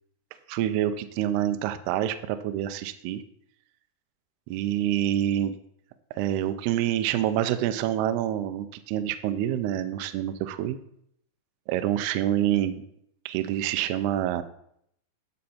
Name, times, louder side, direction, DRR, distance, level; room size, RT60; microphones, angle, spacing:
voice 1, 0.5-3.2 4.5-5.6 6.2-10.8 11.7-12.8 13.3-14.4, right 11 dB, 90° right, 10 dB, 2.3 m, -27 dB
9.8 x 6.5 x 4.2 m, 0.72 s
omnidirectional pair, 5.3 m